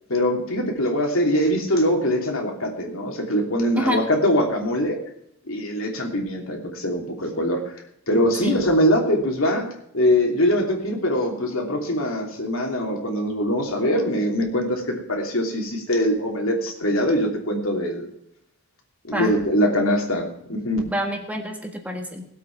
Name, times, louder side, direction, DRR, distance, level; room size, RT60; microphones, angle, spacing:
voice 1, 0.1-5.0 5.5-7.6 8.1-9.7 9.9-18.1 19.0-20.9, equal, 65° left, 2 dB, 3.0 m, -22 dB
voice 2, 20.9-22.2, equal, 5° right, 3 dB, 1.5 m, -27 dB
18.0 x 8.1 x 5.9 m, 0.76 s
head